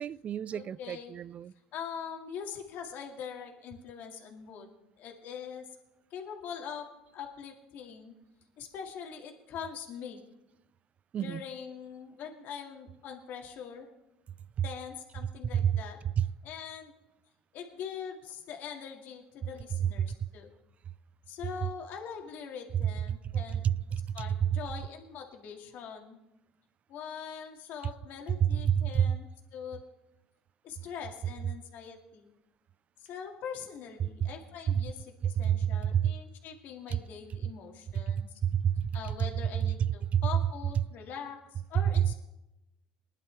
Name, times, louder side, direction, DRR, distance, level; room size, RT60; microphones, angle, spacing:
voice 1, 0.0-1.5 11.1-11.4 15.6-15.8 16.2-16.3 23.6-23.7 24.4-24.5 28.4-29.1 34.0-34.1 35.2-36.1 38.1-38.9 40.1-40.2, right 9 dB, 40° right, 0.3 m, -28 dB
voice 2, 0.5-1.1 1.7-4.7 5.0-5.7 6.1-8.1 8.6-10.2 11.2-13.9 14.6-16.0 16.4-16.9 17.5-20.5 21.3-23.7 24.1-26.2 26.9-29.8 30.6-32.3 33.0-38.3 38.9-42.1, left 7 dB, 60° left, 2.2 m, -43 dB
20.5 x 11.0 x 3.5 m
supercardioid pair, 100°, 3 cm